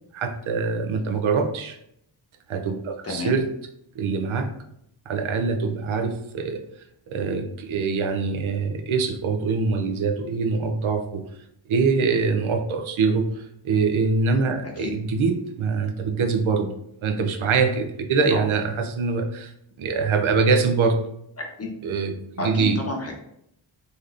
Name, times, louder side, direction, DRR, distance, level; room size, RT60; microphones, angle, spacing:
voice 1, 0.1-1.8 2.5-3.5 4.0-4.5 5.1-6.6 7.1-11.2 11.7-16.7 17.0-19.5 19.8-21.0 21.8-22.8, right 4 dB, 75° right, 6 dB, 0.6 m, -24 dB
voice 2, 3.0-3.4 14.8-14.9 18.3-18.5 21.4-21.7 22.4-23.2, left 2 dB, 30° left, 0 dB, 0.8 m, -30 dB
4.0 x 3.3 x 2.5 m, 0.75 s
wide cardioid pair, 125°, 48 cm